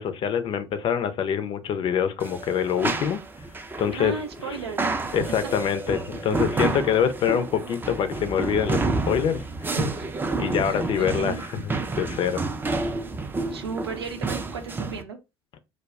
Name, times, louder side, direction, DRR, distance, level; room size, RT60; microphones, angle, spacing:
voice 1, 0.0-3.2 3.8-4.2 5.1-9.4 10.4-11.3 11.6-12.4, left 8 dB, 40° left, 0.5 m, -25 dB
sound 1, 2.2-15.0, right 3 dB, 15° right, 0.4 m, -30 dB
voice 2, 3.9-4.9 5.3-5.4 9.7-10.1 10.6-11.4 13.5-15.2, right 4 dB, 85° right, 0.6 m, -34 dB
2.2 x 2.0 x 3.4 m
figure-of-eight pair, 65°, 13 cm